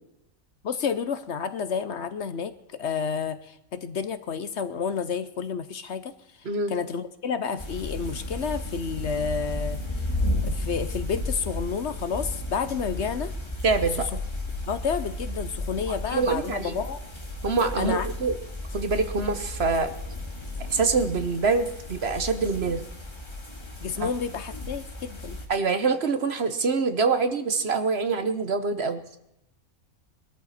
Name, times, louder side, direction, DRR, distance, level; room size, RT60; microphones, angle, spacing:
voice 1, 0.6-6.1 6.7-10.1 10.4-13.3 13.8-14.2 14.7-17.0 17.8-18.1 23.8-25.4, left 6 dB, 60° left, 12 dB, 1.0 m, -30 dB
sound 1, 7.6-25.5, left 1 dB, 20° left, 2.1 m, -34 dB
voice 2, 13.6-14.1 15.9-16.8 17.4-18.3 18.7-19.9 20.7-22.8 24.0-24.1 25.5-29.0, right 4 dB, 50° right, 9 dB, 1.3 m, -25 dB
21.0 x 13.5 x 4.2 m, 0.81 s
omnidirectional pair, 1.4 m